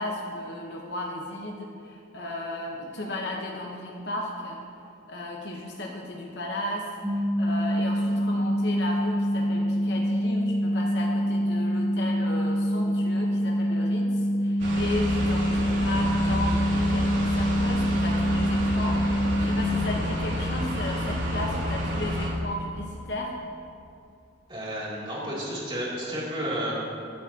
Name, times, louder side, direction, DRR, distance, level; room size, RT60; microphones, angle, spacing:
voice 1, 0.0-4.6 5.1-19.0 19.4-23.3, left 1 dB, 60° left, -1 dB, 1.1 m, -35 dB
sound 1, 7.0-19.6, equal, ahead, 1.4 m, -25 dB
sound 2, 14.6-22.3, equal, 80° right, 3.0 m, -29 dB
voice 2, 24.5-26.8, equal, 25° right, -7 dB, 2.9 m, -31 dB
22.0 x 8.3 x 2.9 m, 2.6 s
head